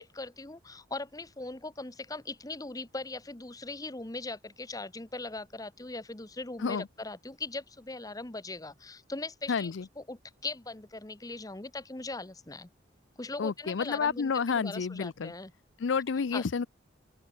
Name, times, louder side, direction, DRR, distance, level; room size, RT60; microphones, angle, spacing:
voice 1, 0.0-12.7 13.2-15.5 16.3-16.4, left 2 dB, 20° left, 1.0 m, -40 dB
voice 2, 9.5-9.9 13.4-15.3 15.8-16.7, left 5 dB, 75° left, 0.5 m, -30 dB
open air
head